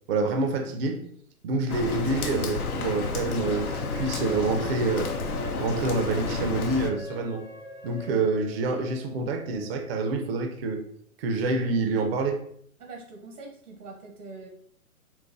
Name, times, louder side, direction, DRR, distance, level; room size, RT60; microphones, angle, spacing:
voice 1, 0.1-1.0 1.4-5.1 5.6-7.4 7.8-10.8 11.2-12.4, right 3 dB, 45° right, 5 dB, 0.4 m, -27 dB
Rain, 1.7-6.9, left 4 dB, 80° left, 0.7 m, -31 dB
sound 1, 3.4-8.4, equal, 35° left, 0.7 m, -41 dB
sound 2, 3.6-9.9, left 5 dB, 60° left, 1.0 m, -50 dB
voice 2, 12.8-14.5, right 3 dB, 85° right, 1 dB, 0.9 m, -43 dB
3.9 x 2.0 x 2.5 m, 0.66 s
hypercardioid pair, 140°, 44 cm